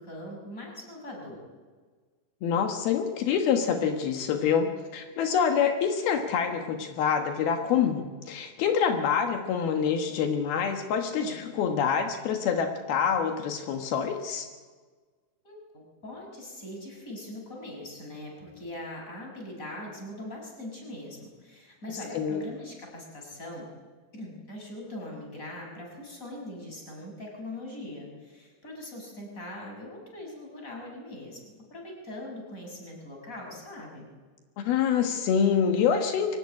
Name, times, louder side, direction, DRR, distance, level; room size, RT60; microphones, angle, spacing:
voice 1, 0.0-1.4 11.1-11.5 15.4-23.7 24.1-34.0, left 1 dB, 20° left, 0 dB, 6.8 m, -41 dB
voice 2, 2.4-14.5 22.1-22.4 34.6-36.4, left 7 dB, 80° left, 5 dB, 3.4 m, -26 dB
24.0 x 17.5 x 9.8 m, 1.4 s
omnidirectional pair, 4.3 m